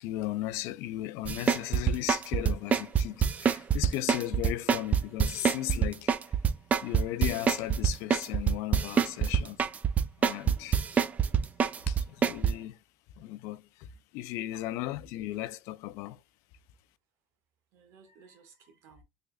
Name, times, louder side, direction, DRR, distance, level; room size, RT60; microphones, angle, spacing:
voice 1, 0.0-6.1 6.8-9.6 10.2-10.8 11.9-12.8 13.2-13.6 14.1-16.2, left 15 dB, 85° left, 0.4 m, -36 dB
sound 1, 1.3-12.5, right 7 dB, 30° right, 0.4 m, -25 dB
voice 2, 17.7-19.0, right 5 dB, 70° right, 1.2 m, -57 dB
3.5 x 3.3 x 2.3 m
cardioid pair, 135°, 5 cm